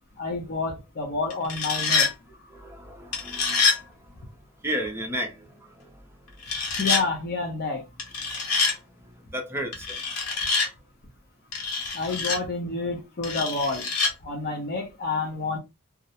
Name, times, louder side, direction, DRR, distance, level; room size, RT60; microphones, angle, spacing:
voice 1, 0.2-2.1 6.8-7.8 11.9-13.9 14.2-15.6, left 3 dB, 45° left, 0.5 m, -29 dB
sound 1, 1.3-2.1 3.1-3.8 6.4-7.0 8.0-8.8 9.7-10.7 11.5-12.4 13.2-14.1, left 4 dB, 80° left, 0.8 m, -25 dB
voice 2, 2.3-4.3 4.6-6.0 7.0-7.1 9.0-10.0 12.1-12.2, equal, 10° right, 0.5 m, -35 dB
2.3 x 2.0 x 2.7 m
head